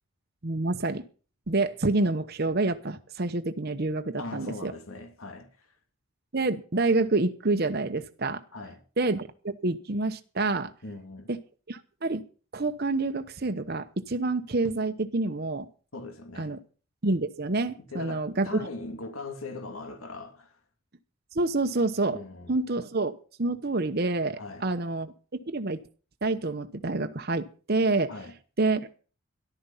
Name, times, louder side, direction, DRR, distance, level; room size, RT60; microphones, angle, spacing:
voice 1, 0.4-1.0 1.5-4.7 6.3-8.4 9.0-10.7 11.3-11.4 11.7-12.2 12.5-15.7 16.4-16.6 17.0-18.7 21.3-22.2 22.5-25.8 26.2-28.1 28.6-28.9, right 2 dB, 45° right, 0.9 m, -28 dB
voice 2, 4.2-5.5 8.5-8.8 10.8-11.3 15.9-16.5 17.9-20.6 22.1-22.5 24.4-24.7 28.1-28.3, left 2 dB, 80° left, 2.7 m, -40 dB
13.5 x 12.0 x 5.6 m
head